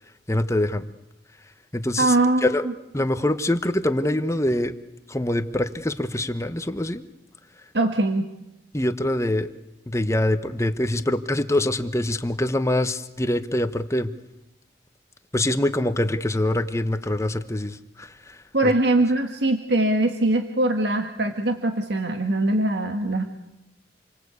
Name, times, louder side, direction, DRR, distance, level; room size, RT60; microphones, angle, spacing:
voice 1, 0.3-0.9 1.7-2.2 2.4-2.7 2.9-4.7 5.1-7.0 8.7-9.5 9.9-14.1 15.3-18.7, left 1 dB, 15° left, 10 dB, 1.2 m, -24 dB
voice 2, 2.0-2.5 7.7-8.2 18.5-23.2, right 2 dB, 75° right, 5 dB, 1.8 m, -22 dB
28.5 x 24.0 x 8.4 m, 0.89 s
head